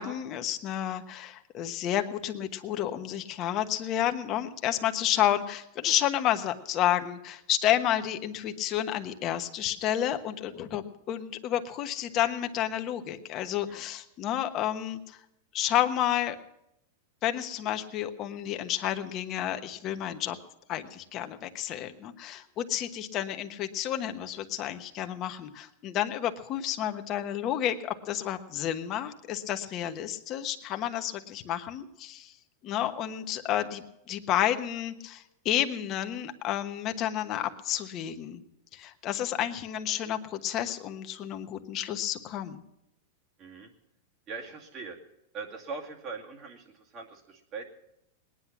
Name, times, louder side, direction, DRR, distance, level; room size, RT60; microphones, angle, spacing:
voice 1, 0.0-15.2 15.5-16.4 17.2-20.4 20.7-32.3 32.6-38.4 38.7-42.6, left 11 dB, 35° left, 7 dB, 1.2 m, -30 dB
voice 2, 43.4-43.7 44.3-45.0 45.3-47.6, right 4 dB, 35° right, 1 dB, 2.4 m, -41 dB
19.0 x 10.0 x 6.0 m, 0.82 s
supercardioid pair, 135°, 0 cm